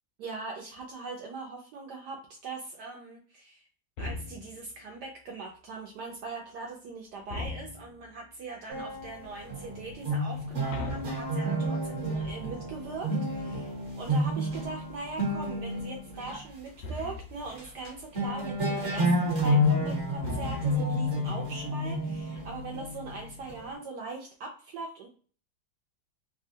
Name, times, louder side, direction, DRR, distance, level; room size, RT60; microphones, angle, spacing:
voice 1, 0.2-3.7 4.0-25.1, right 3 dB, 75° right, 0 dB, 1.0 m, -41 dB
sound 1, 4.0-4.7 7.3-8.1 10.7-11.9 16.8-17.5 20.2-21.0, left 3 dB, 85° left, 1.3 m, -39 dB
Fez-ud tuning, 8.7-16.4 17.0-17.1 17.5-17.9 18.1-23.8, equal, 45° right, 1.1 m, -30 dB
3.2 x 2.2 x 2.7 m, 0.42 s
omnidirectional pair, 2.0 m